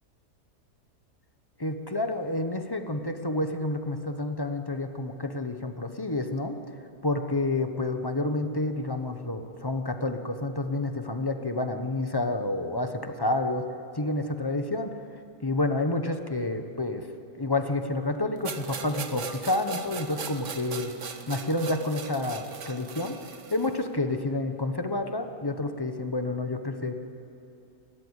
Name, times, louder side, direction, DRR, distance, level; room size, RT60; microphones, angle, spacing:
voice 1, 1.6-6.6 7.0-13.6 13.9-14.9 15.4-17.0 17.4-20.9 21.3-23.1 23.5-27.0, left 2 dB, 15° left, 7 dB, 1.0 m, -29 dB
sound 1, 18.4-23.8, right 6 dB, 50° right, 1.3 m, -39 dB
28.5 x 13.5 x 8.3 m, 2.8 s
omnidirectional pair, 1.8 m